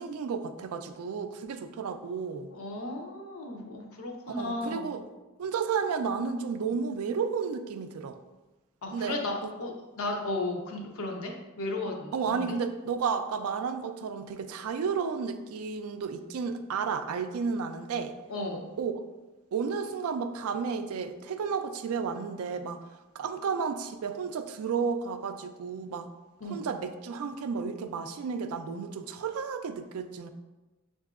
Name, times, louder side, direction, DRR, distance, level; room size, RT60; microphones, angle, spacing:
voice 1, 0.0-2.5 4.3-5.0 5.4-8.2 8.9-9.5 12.1-18.1 18.8-18.9 19.5-22.8 23.1-26.1 26.4-30.3, right 5 dB, 70° right, 8 dB, 0.3 m, -32 dB
voice 2, 2.5-4.9 8.8-12.5 18.3-18.7 26.4-26.6, left 2 dB, 65° left, 1 dB, 0.7 m, -35 dB
6.6 x 2.6 x 2.4 m, 1.1 s
head